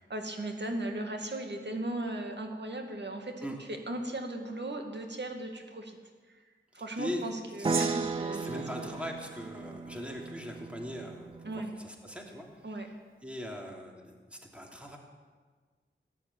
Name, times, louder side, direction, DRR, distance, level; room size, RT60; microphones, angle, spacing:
voice 1, 0.0-6.0 6.3-6.4 6.7-8.9 11.4-11.7 12.6-12.9, right 1 dB, 60° right, 3 dB, 2.2 m, -37 dB
voice 2, 6.7-7.2 7.6-7.9 8.3-12.8 13.2-15.0, equal, 5° right, 0 dB, 3.0 m, -41 dB
sound 1, 7.6-11.8, right 4 dB, 25° right, 0.4 m, -36 dB
Gong, 7.6-10.3, right 4 dB, 90° right, 1.3 m, -41 dB
14.5 x 10.0 x 8.6 m, 1.5 s
wide cardioid pair, 65°, 20 cm